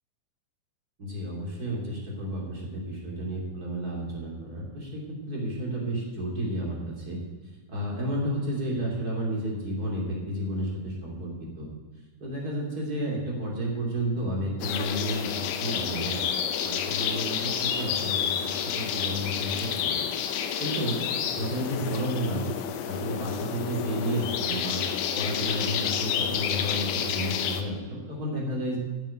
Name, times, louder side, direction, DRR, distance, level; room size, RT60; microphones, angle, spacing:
voice 1, 1.0-7.2 7.7-11.7 12.2-16.2 16.6-20.3 20.6-21.0 21.3-22.5 22.8-24.8 25.1-28.8, equal, 25° right, -2 dB, 2.6 m, -31 dB
sound 1, 14.6-27.6, left 8 dB, 75° left, 1.9 m, -30 dB
11.0 x 6.8 x 8.6 m, 1.3 s
omnidirectional pair, 4.5 m